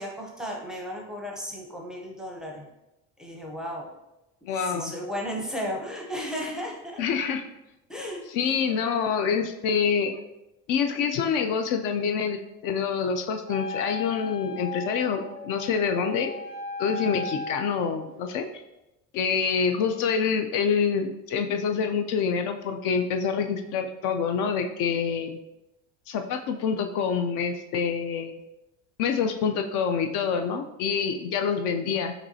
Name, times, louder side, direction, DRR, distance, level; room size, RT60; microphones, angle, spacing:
voice 1, 0.0-2.7 3.2-3.9 4.6-7.0 7.9-8.2 8.5-8.6, equal, ahead, -1 dB, 0.6 m, -34 dB
voice 2, 4.5-4.9 7.0-7.4 8.3-10.2 10.7-16.3 16.8-18.5 19.1-25.4 26.1-28.4 29.0-32.1, left 6 dB, 60° left, 6 dB, 0.5 m, -26 dB
Wind instrument woodwind instrument, 13.5-18.0, left 3 dB, 35° left, 1.3 m, -36 dB
5.2 x 3.1 x 2.7 m, 0.93 s
cardioid pair, 145°, 37 cm